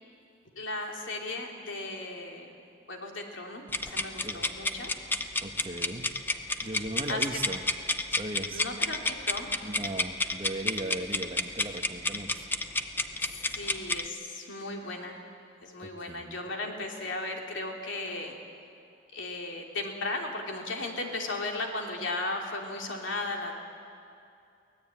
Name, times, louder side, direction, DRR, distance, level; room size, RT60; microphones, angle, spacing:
voice 1, 0.5-2.5 2.9-4.9 7.1-7.2 8.5-9.5 13.2-15.2 15.6-18.4 19.1-23.6, left 2 dB, 80° left, 1 dB, 3.0 m, -36 dB
sound 1, 3.7-14.1, left 2 dB, 10° left, 0.7 m, -30 dB
voice 2, 5.4-6.1 6.6-7.6 8.2-8.6 9.6-12.5 15.8-16.4, right 1 dB, 30° right, 4 dB, 1.4 m, -37 dB
24.0 x 17.5 x 8.8 m, 2.6 s
head